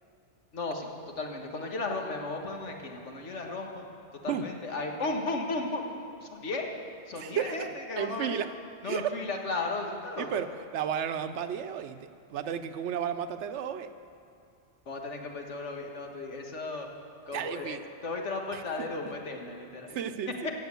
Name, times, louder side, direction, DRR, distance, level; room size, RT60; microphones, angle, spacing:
voice 1, 0.5-0.9 1.2-3.9 4.2-5.8 6.2-6.7 7.1-8.4 8.8-10.3 14.9-16.9 17.3-20.0, left 3 dB, 85° left, 1 dB, 1.8 m, -35 dB
voice 2, 7.1-8.5 8.8-9.1 10.2-13.9 17.3-17.8 18.5-19.1 19.9-20.5, right 8 dB, 80° right, 10 dB, 1.0 m, -33 dB
16.0 x 7.2 x 8.3 m, 2.5 s
omnidirectional pair, 1.2 m